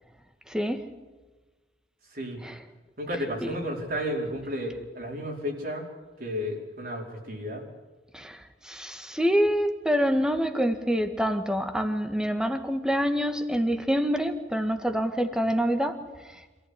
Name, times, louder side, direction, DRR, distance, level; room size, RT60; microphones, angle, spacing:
voice 1, 0.5-0.8 2.4-2.6 8.1-8.4 8.6-16.0, equal, 5° right, 7 dB, 1.8 m, -26 dB
voice 2, 2.1-2.4 3.0-5.9 6.2-7.6, equal, 55° right, 0 dB, 4.9 m, -32 dB
27.0 x 14.5 x 9.7 m, 1.3 s
head